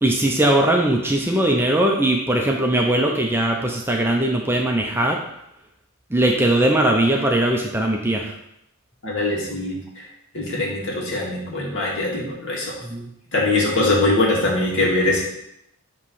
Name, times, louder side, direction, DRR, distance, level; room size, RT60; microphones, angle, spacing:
voice 1, 0.0-5.2 6.1-8.3 12.8-13.1, right 1 dB, 10° right, 0 dB, 0.6 m, -20 dB
voice 2, 9.0-10.0 10.3-12.8 13.3-15.2, left 2 dB, 55° left, -4 dB, 2.1 m, -22 dB
7.8 x 3.2 x 5.6 m, 0.79 s
head